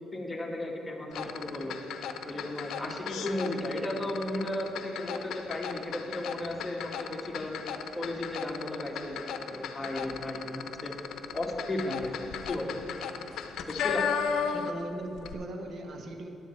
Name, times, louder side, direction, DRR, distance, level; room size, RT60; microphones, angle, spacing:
voice 1, 0.1-1.8 2.2-7.6 8.0-10.9 11.3-12.1 12.5-12.7 13.7-14.1, left 1 dB, 15° left, -1 dB, 1.7 m, -35 dB
sound 1, 1.1-14.9 15.2-15.3, left 7 dB, 80° left, 0.7 m, -35 dB
voice 2, 14.3-16.3, right 2 dB, 60° right, 3 dB, 1.2 m, -39 dB
14.0 x 10.5 x 3.3 m, 2.8 s
cardioid pair, 90°, 0 cm